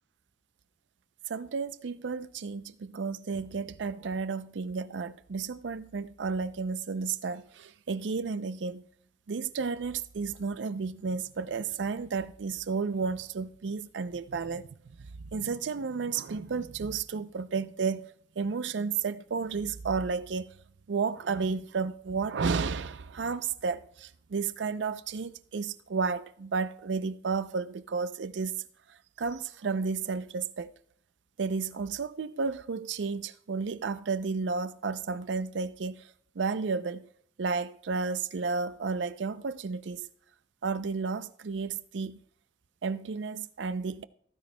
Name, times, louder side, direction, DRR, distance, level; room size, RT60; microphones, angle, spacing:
voice 1, 1.3-8.9 9.3-14.7 15.3-18.1 18.4-20.5 20.9-28.6 29.2-30.7 31.4-36.1 36.4-37.1 37.4-40.1 40.6-42.2 42.8-44.0, right 5 dB, 80° right, 0.5 m, -32 dB
15.0 x 14.0 x 2.2 m
head